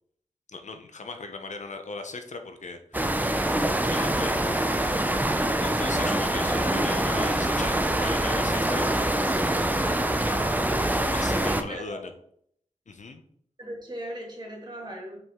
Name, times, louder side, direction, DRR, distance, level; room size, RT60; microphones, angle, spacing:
voice 1, 0.5-3.2 3.9-5.3 5.6-9.4 9.7-10.0 11.1-12.1 12.9-13.2, left 3 dB, 65° left, 7 dB, 0.7 m, -38 dB
sound 1, 2.9-11.6, right 1 dB, 10° right, 0.5 m, -25 dB
voice 2, 10.2-11.0 11.4-12.1 13.6-15.2, right 1 dB, 35° right, -2 dB, 2.0 m, -38 dB
5.5 x 4.7 x 3.6 m, 0.66 s
wide cardioid pair, 90°, 13 cm